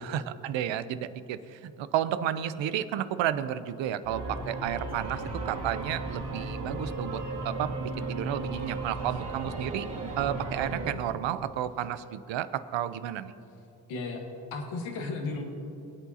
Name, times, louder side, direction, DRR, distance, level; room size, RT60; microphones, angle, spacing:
voice 1, 0.0-9.9 10.2-13.3, right 10 dB, 75° right, 13 dB, 0.7 m, -32 dB
sound 1, 4.0-10.9, right 2 dB, 55° right, 2.3 m, -35 dB
voice 2, 13.9-14.2 14.5-15.4, left 3 dB, 90° left, 2 dB, 1.5 m, -34 dB
23.0 x 8.2 x 2.8 m, 2.9 s
supercardioid pair, 60°, 46 cm